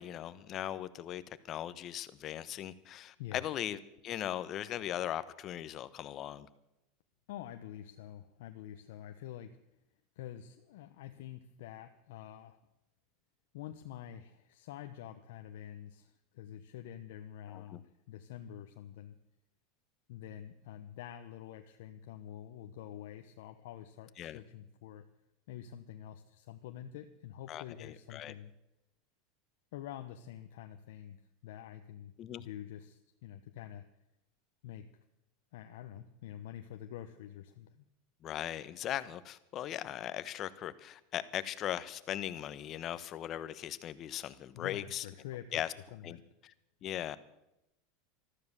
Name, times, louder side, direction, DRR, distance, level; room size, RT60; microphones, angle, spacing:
voice 1, 0.0-6.5 17.5-17.8 24.2-24.4 27.5-28.3 32.2-32.5 38.2-45.0 45.5-45.7 46.0-46.2 46.4-46.5 46.8-47.2, left 11 dB, 40° left, 1.0 m, -39 dB
voice 2, 7.3-9.6 10.2-12.6 13.5-19.1 20.1-25.1 25.5-28.5 29.7-31.2 31.4-32.1 32.4-33.8 34.6-34.9 35.5-37.8 44.5-45.6 45.9-46.3, left 11 dB, 75° left, 1.0 m, -47 dB
14.0 x 13.5 x 6.8 m
supercardioid pair, 115°, 0 cm